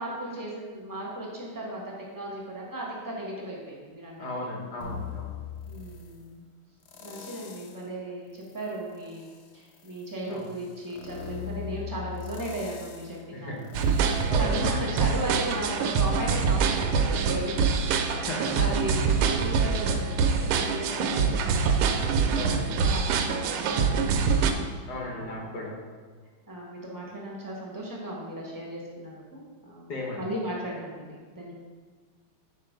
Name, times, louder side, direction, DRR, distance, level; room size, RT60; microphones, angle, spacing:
voice 1, 0.0-4.5 5.6-6.4 7.0-9.3 9.5-21.9 22.2-24.4 25.0-25.6 26.5-31.5, right 1 dB, 25° right, -4 dB, 0.4 m, -36 dB
voice 2, 4.2-5.3 10.3-10.4 13.3-13.6 14.3-14.6 18.3-18.6 22.3-22.7 24.9-25.8 29.9-30.2, left 2 dB, 55° left, -1 dB, 1.6 m, -35 dB
sound 1, 4.8-6.2 6.8-7.9 8.4-15.1 15.5-15.6, left 8 dB, 70° left, 0.9 m, -41 dB
sound 2, 13.7-24.5, right 5 dB, 80° right, 1.4 m, -25 dB
5.7 x 4.6 x 5.0 m, 1.5 s
omnidirectional pair, 2.4 m